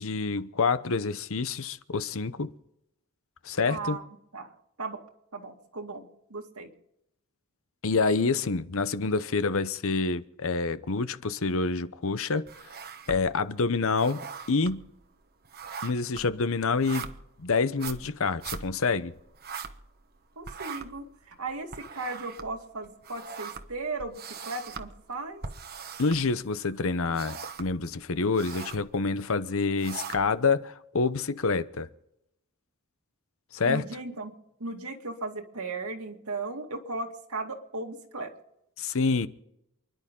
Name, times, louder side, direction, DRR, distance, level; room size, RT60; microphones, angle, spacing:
voice 1, 0.0-2.5 3.4-4.0 7.8-12.5 13.1-14.9 15.8-17.1 17.4-19.1 26.0-31.9 33.5-33.8 38.8-39.3, left 4 dB, 65° left, 0.8 m, -27 dB
voice 2, 3.7-5.0 5.3-6.7 20.4-25.4 33.6-34.3 34.6-38.3, right 3 dB, 75° right, 2.3 m, -37 dB
sound 1, 12.5-13.5 13.8-20.2 20.4-26.7 27.0-27.8 28.2-28.9 29.5-30.5, right 6 dB, 45° right, 1.2 m, -41 dB
29.0 x 11.0 x 3.8 m
head